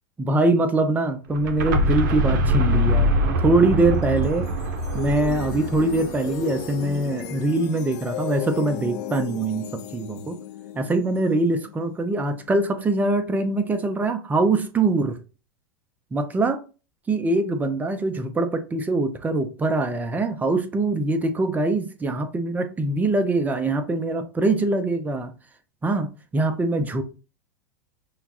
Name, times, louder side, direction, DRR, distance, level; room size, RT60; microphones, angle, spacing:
voice 1, 0.2-3.1 3.4-4.5 4.9-10.4 10.7-15.2 16.1-16.6 17.1-25.3 25.8-27.0, right 2 dB, 15° right, 0.6 m, -23 dB
Sound design cinematic drone sweep, 1.3-7.1, equal, 65° right, 0.7 m, -24 dB
sound 1, 3.8-13.0, left 9 dB, 55° left, 0.5 m, -36 dB
5.6 x 2.3 x 2.5 m
hypercardioid pair, 110°, 11 cm